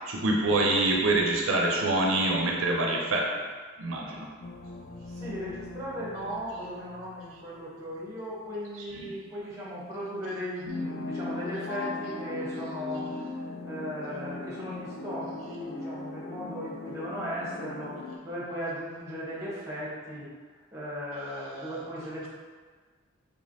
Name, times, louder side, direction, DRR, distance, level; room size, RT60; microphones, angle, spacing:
voice 1, 0.0-3.3 3.8-4.3 8.9-9.1, right 2 dB, 75° right, -1 dB, 0.4 m, -25 dB
sound 1, 4.4-7.7 8.1-8.2 10.7-18.2, left 3 dB, 45° left, 0.3 m, -38 dB
voice 2, 5.1-13.2 13.6-20.3 20.7-22.3, equal, 15° right, -7 dB, 0.9 m, -37 dB
3.4 x 3.1 x 2.6 m, 1.5 s
head